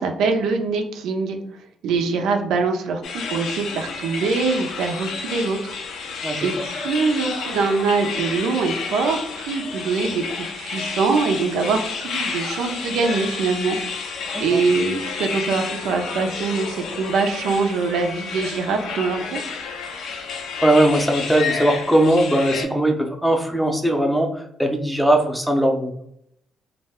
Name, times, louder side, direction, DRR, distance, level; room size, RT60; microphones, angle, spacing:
voice 1, 0.0-1.4 1.8-5.8 6.4-13.8 14.4-19.4, right 4 dB, 85° right, 4 dB, 0.4 m, -23 dB
sound 1, 3.0-22.6, left 5 dB, 80° left, 0.5 m, -30 dB
voice 2, 20.6-25.9, right 1 dB, ahead, 3 dB, 0.5 m, -19 dB
2.3 x 2.1 x 3.4 m, 0.70 s
cardioid pair, 90°, 0 cm